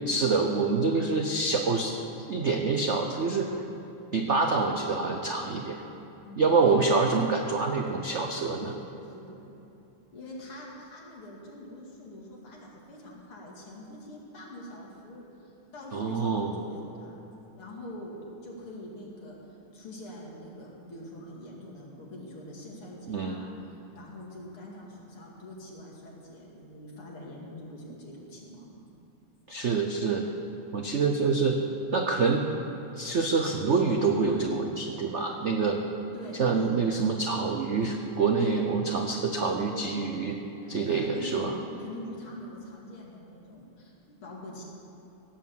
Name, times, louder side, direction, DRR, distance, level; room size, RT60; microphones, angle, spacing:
voice 1, 0.1-1.9 2.3-3.6 4.1-5.8 6.4-8.7 15.9-16.5 23.1-23.4 29.5-30.3 30.7-31.6 31.9-32.4 33.0-35.8 36.4-40.4 40.7-41.5, right 4 dB, 75° right, 3 dB, 0.6 m, -26 dB
voice 2, 2.7-3.0 6.2-7.0 8.0-9.4 10.1-17.1 17.5-28.8 36.1-36.9 38.5-38.7 40.6-44.6, left 1 dB, 80° left, -3 dB, 3.3 m, -44 dB
16.5 x 8.4 x 7.3 m, 2.9 s
omnidirectional pair, 2.4 m